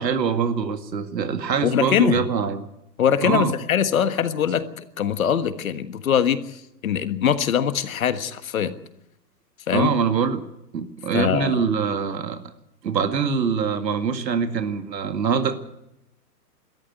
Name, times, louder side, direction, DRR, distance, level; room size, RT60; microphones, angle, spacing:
voice 1, 0.0-2.7 3.2-3.5 9.7-10.4 10.7-12.4 12.8-15.6, right 6 dB, 80° right, 9 dB, 2.3 m, -24 dB
voice 2, 1.6-2.3 3.0-6.6 6.8-8.7 9.7-9.9 11.1-11.6, left 8 dB, 55° left, 12 dB, 1.6 m, -22 dB
21.0 x 13.5 x 9.5 m, 0.84 s
hypercardioid pair, 165°, 49 cm